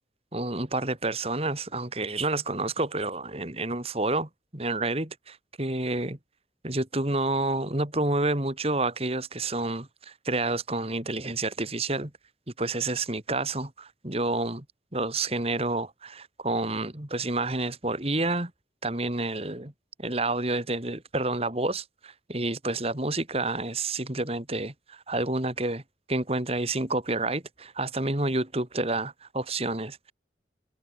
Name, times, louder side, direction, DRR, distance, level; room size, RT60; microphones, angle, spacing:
voice 1, 0.3-6.2 6.6-12.1 12.6-14.6 14.9-18.5 18.8-19.7 20.0-25.8 26.1-30.1, right 2 dB, 35° right, 2.6 m, -29 dB
head